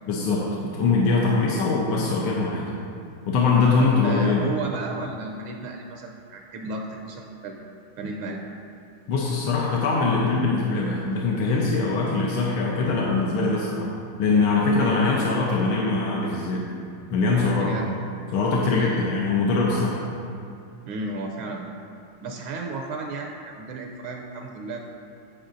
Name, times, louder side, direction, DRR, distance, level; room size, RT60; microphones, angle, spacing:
voice 1, 0.1-2.7 3.3-4.4 9.1-13.9 14.2-16.6 17.1-17.7 18.3-20.1, left 3 dB, 80° left, -3 dB, 1.7 m, -22 dB
voice 2, 3.5-7.7 8.0-8.4 14.8-15.0 17.5-17.9 18.7-19.1 20.8-21.7 22.2-24.9, right 2 dB, 80° right, 2 dB, 1.4 m, -33 dB
16.0 x 5.6 x 2.6 m, 2.6 s
omnidirectional pair, 2.3 m